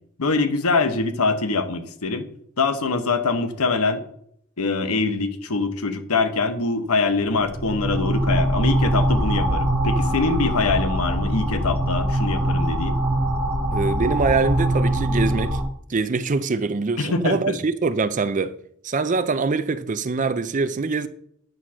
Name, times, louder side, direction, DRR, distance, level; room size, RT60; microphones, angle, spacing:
voice 1, 0.2-2.3 2.6-4.0 4.6-13.0 17.0-17.6, left 3 dB, 85° left, 1.0 m, -23 dB
sound 1, 7.3-15.6, right 1 dB, 85° right, 1.4 m, -22 dB
voice 2, 13.7-15.6 15.9-18.6 18.8-21.1, right 4 dB, 35° right, 0.4 m, -23 dB
9.2 x 4.3 x 6.2 m
head